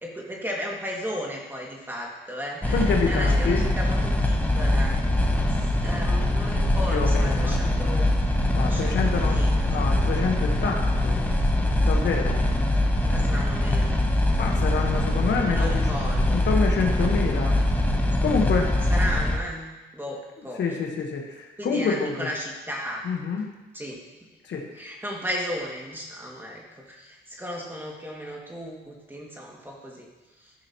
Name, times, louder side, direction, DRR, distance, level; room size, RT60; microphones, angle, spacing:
voice 1, 0.0-5.0 5.6-8.2 8.6-9.8 13.0-14.1 15.4-16.4 18.9-19.7 19.9-20.6 21.6-23.1 23.7-24.0 24.7-30.1 30.4-30.5, equal, 10° right, -2 dB, 2.1 m, -35 dB
sound 1, 2.6-19.4, left 1 dB, 10° left, 1.1 m, -23 dB
voice 2, 2.7-3.6 6.9-7.6 8.5-11.2 11.8-12.4 14.4-15.7 16.3-17.5 18.2-18.7 20.6-22.3 23.0-23.5 24.5-24.6, left 5 dB, 65° left, 2 dB, 1.3 m, -27 dB
13.5 x 5.8 x 3.0 m, 1.1 s
cardioid pair, 90°, 20 cm